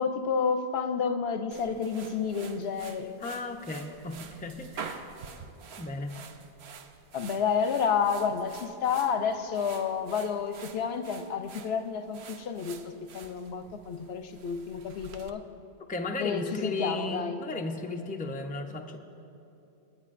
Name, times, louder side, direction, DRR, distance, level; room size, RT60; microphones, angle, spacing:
voice 1, 0.0-3.2 7.1-15.4 16.2-17.4, left 6 dB, 75° left, 9 dB, 0.9 m, -30 dB
sound 1, 1.5-15.3, right 6 dB, 75° right, 0.9 m, -47 dB
voice 2, 3.2-5.0 5.8-6.2 15.9-19.0, left 2 dB, 10° left, 3 dB, 0.5 m, -35 dB
27.5 x 9.5 x 2.5 m, 2.9 s
omnidirectional pair, 1.1 m